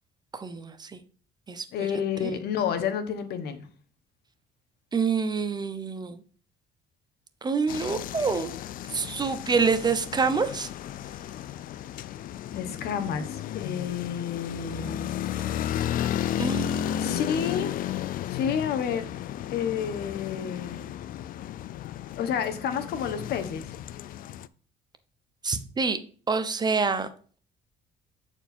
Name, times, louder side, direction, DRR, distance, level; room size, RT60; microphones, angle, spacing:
voice 1, 0.3-1.0 1.5-1.7 2.2-2.3 4.9-6.2 7.4-8.5 8.9-10.7 16.4-17.2 25.4-26.0 26.3-27.1, right 5 dB, 25° right, 10 dB, 0.8 m, -27 dB
voice 2, 1.7-3.7 12.5-15.1 17.0-17.7 18.3-19.1 19.4-20.8 22.2-23.6, left 7 dB, 70° left, 9 dB, 1.2 m, -30 dB
sound 1, 7.7-24.5, left 11 dB, 55° left, 0.4 m, -33 dB
8.0 x 4.5 x 4.3 m, 0.42 s
cardioid pair, 110°, 17 cm